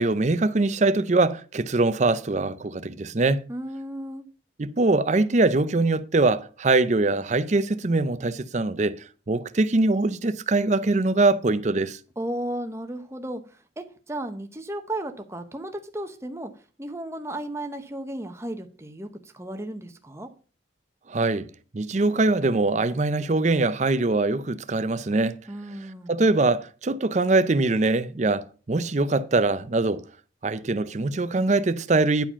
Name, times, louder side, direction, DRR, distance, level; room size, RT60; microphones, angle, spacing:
voice 1, 0.0-3.4 4.6-9.0 9.3-12.0 21.1-21.5 21.7-25.4 26.1-30.0 30.4-32.3, right 3 dB, 40° right, 0.5 m, -23 dB
voice 2, 3.5-4.2 12.2-13.4 13.8-16.5 16.8-20.3 25.5-26.1, right 1 dB, 15° right, 0.9 m, -34 dB
10.5 x 4.9 x 5.6 m
head